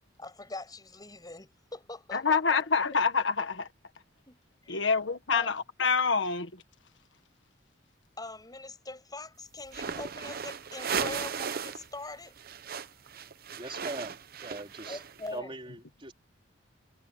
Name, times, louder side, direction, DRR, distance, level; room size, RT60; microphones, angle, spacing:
voice 1, 0.2-2.6 4.3-4.4 4.6-4.9 5.3-5.5 8.2-12.3 14.9-15.6, left 2 dB, 20° left, 6.3 m, -42 dB
voice 2, 2.1-3.7 4.7-6.5, left 5 dB, 80° left, 1.5 m, -26 dB
sound 1, 9.7-11.9 12.1-15.3, right 6 dB, 55° right, 0.8 m, -36 dB
voice 3, 13.5-15.0 15.3-16.1, right 2 dB, 30° right, 4.0 m, -41 dB
head